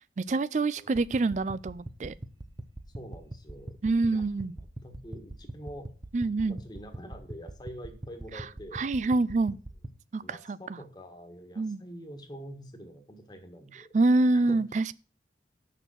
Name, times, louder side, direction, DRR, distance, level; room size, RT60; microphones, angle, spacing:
voice 1, 0.2-2.1 3.8-4.6 6.1-6.6 8.3-8.4 8.7-9.6 10.1-10.8 11.6-11.8 13.9-14.9, right 2 dB, 40° right, 0.4 m, -26 dB
sound 1, 0.9-9.9, right 1 dB, 25° right, 0.8 m, -44 dB
voice 2, 2.9-3.8 4.1-4.2 4.6-5.9 6.4-8.8 10.2-13.9 14.3-14.6, equal, 25° left, 1.5 m, -46 dB
6.6 x 6.4 x 7.6 m
head